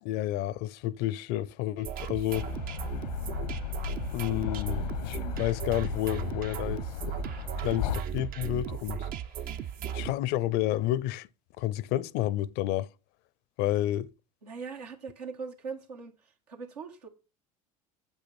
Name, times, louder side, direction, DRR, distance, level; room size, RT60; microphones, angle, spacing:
voice 1, 0.0-2.5 4.1-7.2 7.6-9.1 9.9-11.3 11.6-12.9 13.6-14.1, left 14 dB, 55° left, 0.6 m, -30 dB
sound 1, 1.8-10.1, right 8 dB, 45° right, 0.7 m, -36 dB
sound 2, 2.3-8.0, left 9 dB, 85° left, 0.9 m, -36 dB
voice 2, 14.4-17.1, right 5 dB, 85° right, 1.9 m, -41 dB
8.8 x 7.9 x 4.3 m
hypercardioid pair, 75°, 20 cm